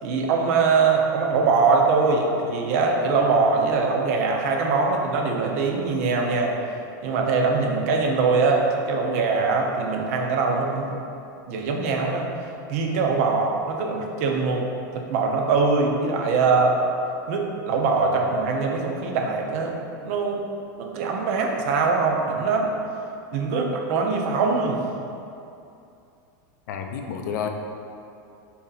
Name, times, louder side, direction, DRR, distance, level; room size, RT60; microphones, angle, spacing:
voice 1, 0.0-6.6 7.0-10.9 11.5-12.3 12.7-14.7 14.9-16.8 17.3-19.8 20.0-20.4 20.8-22.7 23.3-24.8, right 4 dB, 45° right, 1 dB, 0.5 m, -22 dB
voice 2, 26.7-27.5, left 7 dB, 65° left, 4 dB, 0.4 m, -30 dB
4.1 x 2.8 x 3.7 m, 2.6 s
supercardioid pair, 175°, 11 cm